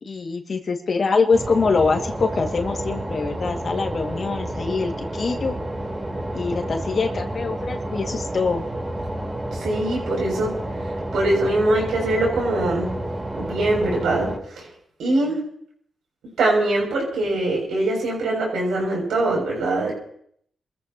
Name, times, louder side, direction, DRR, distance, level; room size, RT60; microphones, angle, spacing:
voice 1, 0.0-5.5 6.3-8.6, left 4 dB, 55° left, 3 dB, 2.1 m, -24 dB
sound 1, 1.3-14.4, right 1 dB, 20° right, 3.9 m, -30 dB
voice 2, 9.5-10.5 11.1-12.9 13.3-14.7 15.0-15.4 16.4-19.9, right 2 dB, 85° right, -1 dB, 6.9 m, -22 dB
27.5 x 14.5 x 3.0 m, 0.64 s
cardioid pair, 60°, 0 cm